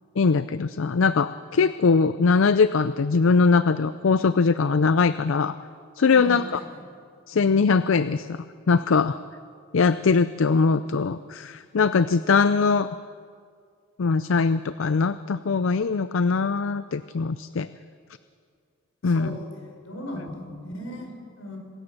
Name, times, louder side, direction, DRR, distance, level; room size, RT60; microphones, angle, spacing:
voice 1, 0.2-5.5 6.0-6.6 7.3-9.2 9.7-13.0 14.0-17.7 19.0-19.4, left 4 dB, 65° left, 14 dB, 0.5 m, -21 dB
voice 2, 6.1-6.7 19.0-19.5 19.8-21.6, equal, 85° left, 2 dB, 5.4 m, -37 dB
25.5 x 16.5 x 6.6 m, 2.1 s
head